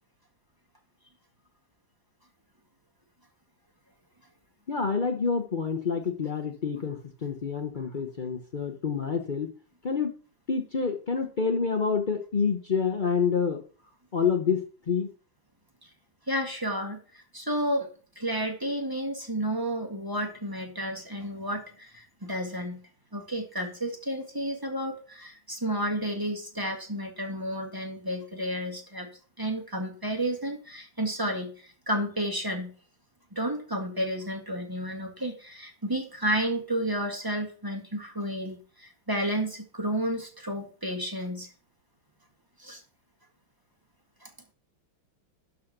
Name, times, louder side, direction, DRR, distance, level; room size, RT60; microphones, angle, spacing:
voice 1, 4.7-9.5 9.8-10.1 10.5-13.6 14.1-15.1, left 5 dB, 75° left, 5 dB, 0.4 m, -28 dB
voice 2, 16.3-17.9 18.1-22.8 23.1-29.1 29.4-32.7 33.3-41.5 42.6-42.8 44.2-44.3, right 1 dB, 10° right, 3 dB, 1.5 m, -31 dB
12.0 x 4.2 x 6.5 m, 0.41 s
omnidirectional pair, 2.3 m